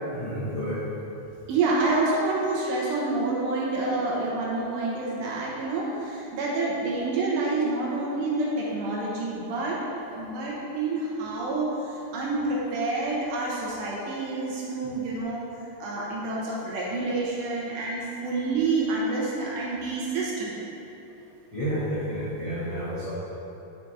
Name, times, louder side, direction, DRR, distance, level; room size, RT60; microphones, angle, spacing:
voice 1, 0.1-0.8 21.5-23.1, equal, 70° left, -12 dB, 1.1 m, -30 dB
voice 2, 1.5-9.8 10.1-15.5 15.8-20.6, right 3 dB, 75° right, -5 dB, 3.2 m, -28 dB
10.0 x 6.1 x 2.8 m, 2.9 s
omnidirectional pair, 5.2 m